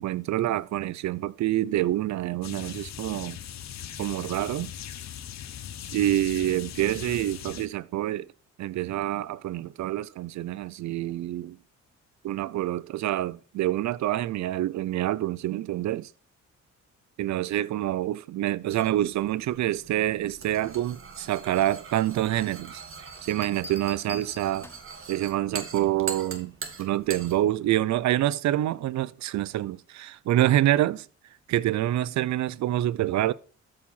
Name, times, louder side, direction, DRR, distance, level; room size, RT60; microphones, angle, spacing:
voice 1, 0.0-3.4 4.0-4.7 5.9-8.3 8.6-11.6 12.2-16.1 17.2-22.8 23.2-24.7 25.1-26.5 26.8-31.1 31.5-33.3, right 14 dB, 65° right, 0.6 m, -27 dB
sound 1, 2.4-7.7, left 10 dB, 60° left, 1.1 m, -40 dB
sound 2, 18.7-27.4, right 5 dB, 45° right, 1.7 m, -42 dB
Bell, 23.1-25.0 26.6-27.0, left 2 dB, 10° left, 0.6 m, -44 dB
13.0 x 4.8 x 5.5 m
cardioid pair, 90°, 30 cm